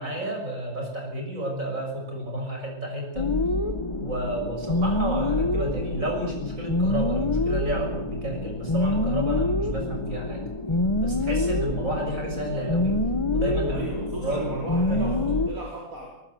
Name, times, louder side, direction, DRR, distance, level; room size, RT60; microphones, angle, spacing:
voice 1, 0.0-3.3 4.0-10.4 11.0-13.0 13.3-13.9 14.2-15.2, right 1 dB, 75° right, 1 dB, 7.2 m, -31 dB
sound 1, 3.2-15.5, left 2 dB, 20° left, 1.2 m, -26 dB
voice 2, 13.6-16.1, right 1 dB, 90° right, -2 dB, 4.7 m, -36 dB
23.5 x 19.5 x 8.0 m, 0.89 s
omnidirectional pair, 1.4 m